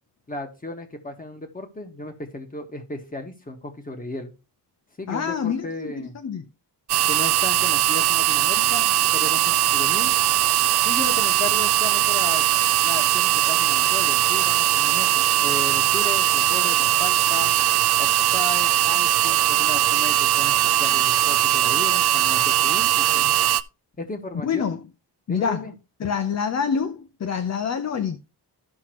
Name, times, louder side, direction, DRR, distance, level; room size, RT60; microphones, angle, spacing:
voice 1, 0.3-4.3 5.0-6.2 7.1-10.1 10.8-12.4 12.8-17.5 18.0-23.4 24.0-24.7 25.3-25.7, left 2 dB, 20° left, 1.7 m, -35 dB
voice 2, 5.1-6.4 24.4-24.8 25.3-25.7 26.0-28.2, left 6 dB, 40° left, 0.6 m, -26 dB
sound 1, 6.9-23.6, right 12 dB, 65° right, 0.5 m, -20 dB
14.0 x 5.9 x 3.0 m
wide cardioid pair, 155°, 42 cm